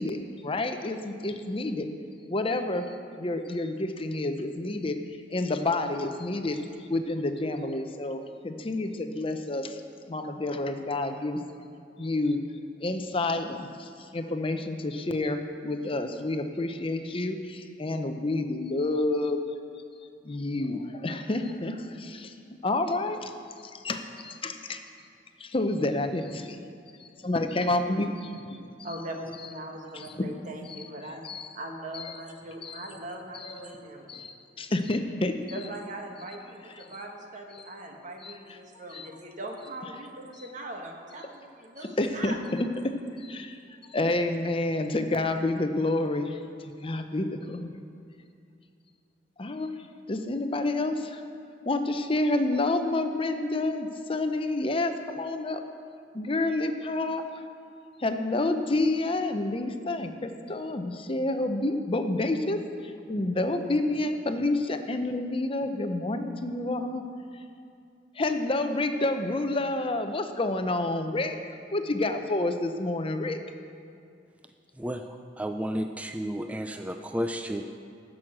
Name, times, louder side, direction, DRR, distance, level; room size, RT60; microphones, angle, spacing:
voice 1, 0.0-1.9 2.3-5.0 5.3-6.6 6.9-9.8 10.1-11.4 12.0-12.4 12.8-19.4 20.2-22.3 22.6-23.3 23.6-24.8 25.4-26.6 27.2-28.4 29.9-30.3 31.2-31.5 31.9-32.0 32.6-32.8 33.3-33.7 34.1-35.6 38.2-38.3 38.9-39.1 42.0-42.7 43.2-43.6 43.9-46.4 46.8-47.8 49.4-49.7 50.1-51.2 51.7-55.6 56.1-57.2 58.0-67.0 68.2-71.4 71.7-73.4, left 2 dB, 30° left, 7 dB, 0.7 m, -29 dB
voice 2, 28.8-31.2 31.5-34.3 35.5-42.4, right 1 dB, 45° right, 2 dB, 1.3 m, -40 dB
voice 3, 74.8-77.7, equal, 5° right, 6 dB, 0.4 m, -32 dB
15.5 x 6.4 x 6.0 m, 2.5 s
head